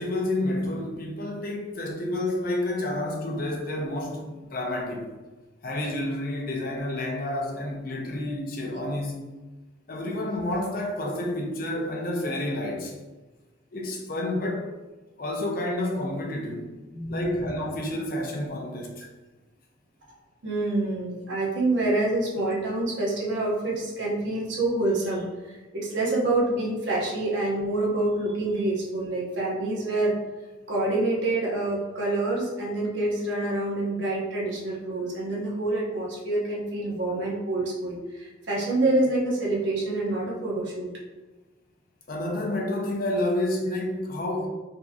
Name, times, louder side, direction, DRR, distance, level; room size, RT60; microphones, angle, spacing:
voice 1, 0.0-5.1 5.6-9.2 9.9-13.0 13.7-14.7 15.2-16.8 17.1-19.1 42.1-44.5, left 1 dB, 45° left, 0 dB, 0.6 m, -29 dB
voice 2, 16.9-17.5 20.4-30.2 30.7-40.9, right 2 dB, 70° right, -4 dB, 1.1 m, -27 dB
4.1 x 2.9 x 2.3 m, 1.2 s
head